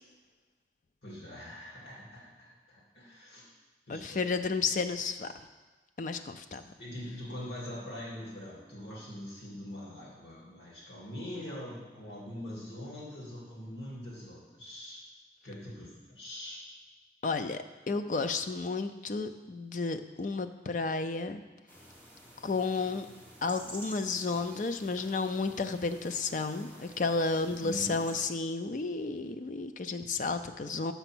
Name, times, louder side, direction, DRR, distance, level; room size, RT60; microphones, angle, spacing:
voice 1, 1.0-3.4 3.9-4.3 6.8-15.0 15.4-16.6 27.6-28.0, left 1 dB, 80° left, -5 dB, 2.4 m, -43 dB
voice 2, 3.9-5.3 6.0-6.6 17.2-21.4 22.4-23.1 23.4-30.9, left 4 dB, 45° left, 9 dB, 0.4 m, -32 dB
sound 1, 21.7-28.3, equal, 10° left, 1.1 m, -50 dB
6.8 x 5.6 x 6.1 m, 1.3 s
head